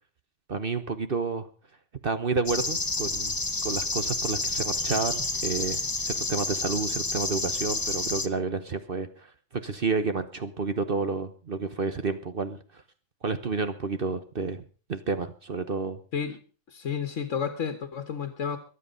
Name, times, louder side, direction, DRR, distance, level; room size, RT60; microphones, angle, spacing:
voice 1, 0.5-1.5 2.0-3.3 3.6-5.8 6.1-9.3 9.6-12.8 13.2-14.6 14.9-16.0, right 4 dB, 50° right, 1.3 m, -30 dB
sound 1, 2.5-8.3, left 3 dB, 20° left, 0.9 m, -29 dB
voice 2, 16.7-18.6, left 7 dB, 85° left, 1.6 m, -31 dB
22.5 x 8.4 x 5.3 m
omnidirectional pair, 1.3 m